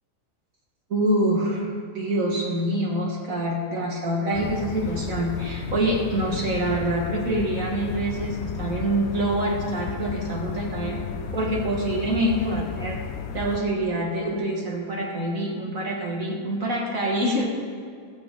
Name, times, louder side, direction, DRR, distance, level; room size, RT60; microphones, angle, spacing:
voice 1, 0.9-11.0 11.3-13.0 13.3-17.4, right 1 dB, 60° right, -2 dB, 2.2 m, -26 dB
sound 1, 4.3-13.6, left 8 dB, 65° left, 0.7 m, -34 dB
21.0 x 7.4 x 3.9 m, 2.2 s
omnidirectional pair, 1.7 m